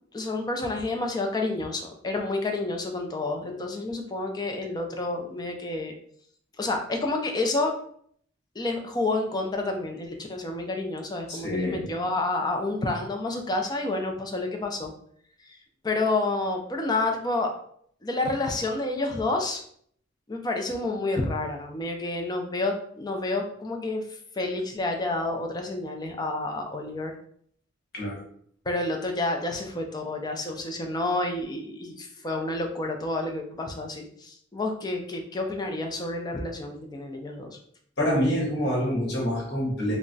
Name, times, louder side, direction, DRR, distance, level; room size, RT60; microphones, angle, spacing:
voice 1, 0.1-5.9 6.6-7.7 8.6-14.9 15.8-17.5 18.0-19.6 20.3-24.0 24.4-27.1 28.7-37.5, left 2 dB, 20° left, 3 dB, 0.4 m, -29 dB
voice 2, 11.3-11.9 27.9-28.2 38.0-40.0, equal, 60° left, -2 dB, 1.0 m, -26 dB
2.3 x 2.1 x 3.8 m, 0.63 s
head